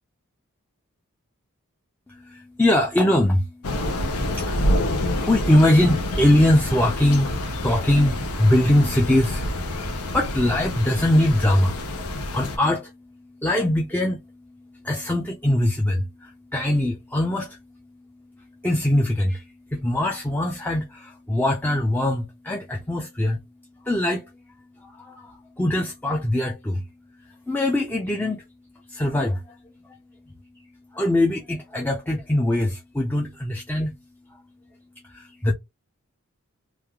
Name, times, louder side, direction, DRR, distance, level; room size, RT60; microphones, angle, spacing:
voice 1, 2.1-18.0 18.4-23.4 23.8-26.9 27.2-28.4 28.9-29.6 30.6-34.0 34.3-34.4 35.0-35.5, left 1 dB, 10° left, 0.4 m, -23 dB
Thunder / Rain, 3.6-12.6, left 1 dB, 90° left, 0.7 m, -27 dB
3.2 x 2.5 x 2.2 m
head